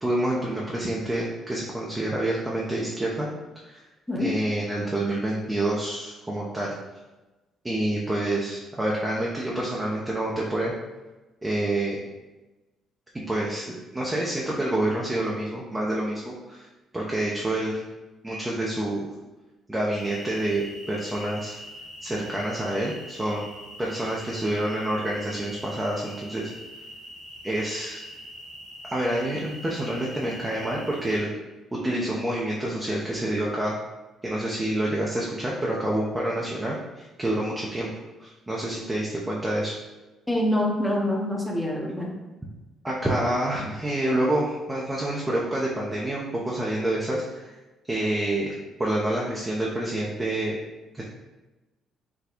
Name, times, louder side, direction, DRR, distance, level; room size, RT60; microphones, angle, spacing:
voice 1, 0.0-3.3 3.6-3.8 4.2-6.7 7.6-10.7 11.4-12.0 13.3-16.7 16.9-17.8 18.2-19.1 19.7-21.6 22.0-23.5 23.8-26.5 27.4-28.0 28.9-31.3 31.7-33.8 34.2-37.9 38.2-39.7 42.8-47.5 47.9-48.5 48.8-50.6 50.9-51.0, right 1 dB, 20° right, -4 dB, 0.7 m, -27 dB
sound 1, 20.0-31.2, equal, 85° left, 1.0 m, -43 dB
voice 2, 40.3-42.1, left 1 dB, 5° left, -1 dB, 0.9 m, -25 dB
4.1 x 2.2 x 2.9 m, 1.1 s
hypercardioid pair, 55°, 0 cm